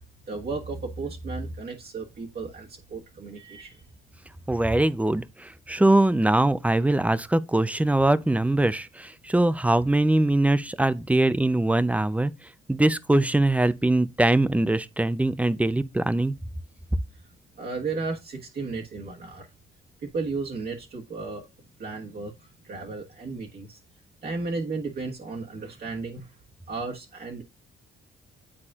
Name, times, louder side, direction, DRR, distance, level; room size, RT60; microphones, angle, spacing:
voice 1, 0.3-3.8 17.6-19.5 20.0-21.5 21.8-23.8 24.2-26.3 26.7-27.4, right 3 dB, 50° right, 1.4 m, -34 dB
voice 2, 4.5-12.3 12.7-16.3, right 1 dB, 5° right, 0.5 m, -22 dB
9.8 x 4.2 x 2.4 m
cardioid pair, 90°, 20 cm